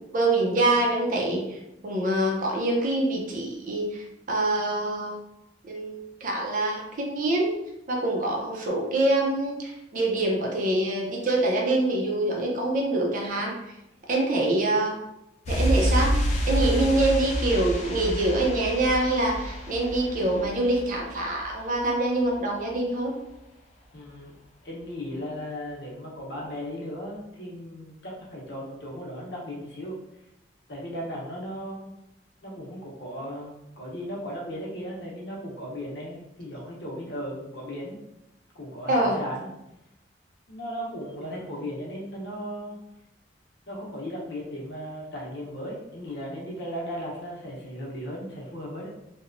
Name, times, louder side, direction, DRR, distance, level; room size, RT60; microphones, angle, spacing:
voice 1, 0.0-5.2 5.6-7.5 7.9-13.5 14.1-15.0 15.5-23.2 38.9-39.2, right 2 dB, 45° right, -1 dB, 0.5 m, -25 dB
sound 1, 15.5-22.0 22.2-22.3, equal, 40° left, 0.4 m, -28 dB
voice 2, 23.9-24.3 24.6-30.0 30.7-31.9 32.4-38.0 38.5-39.5 40.5-42.8 43.7-48.9, equal, 65° left, -4 dB, 0.8 m, -36 dB
2.8 x 2.1 x 2.5 m, 0.88 s
head